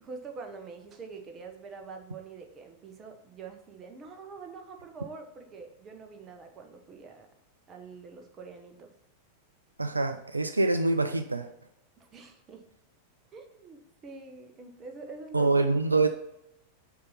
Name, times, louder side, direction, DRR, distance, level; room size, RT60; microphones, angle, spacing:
voice 1, 0.0-7.3 7.7-8.9 12.0-12.6 13.3-15.5, right 4 dB, 25° right, 4 dB, 0.8 m, -45 dB
voice 2, 9.8-11.5 15.3-16.1, right 3 dB, 80° right, 8 dB, 0.3 m, -25 dB
6.6 x 2.7 x 5.5 m, 0.85 s
figure-of-eight pair, 90°, 0 cm